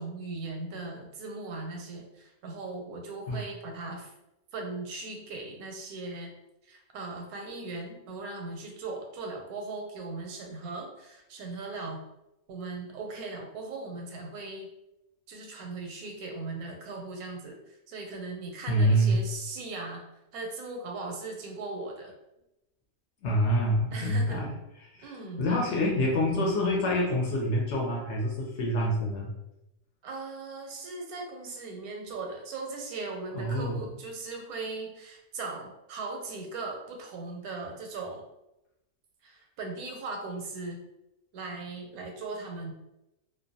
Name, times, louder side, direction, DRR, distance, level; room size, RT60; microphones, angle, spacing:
voice 1, 0.0-4.1 4.5-6.3 6.6-12.1 12.5-14.7 15.3-22.1 23.9-24.5 25.0-25.5 30.0-38.2 39.2-40.8 41.3-42.7, right 3 dB, 85° right, 1 dB, 1.1 m, -38 dB
voice 2, 18.7-19.2 23.2-24.5 24.9-25.1 25.4-29.3 33.3-33.8, equal, 65° left, -2 dB, 0.8 m, -26 dB
2.5 x 2.1 x 2.6 m, 0.90 s
omnidirectional pair, 1.5 m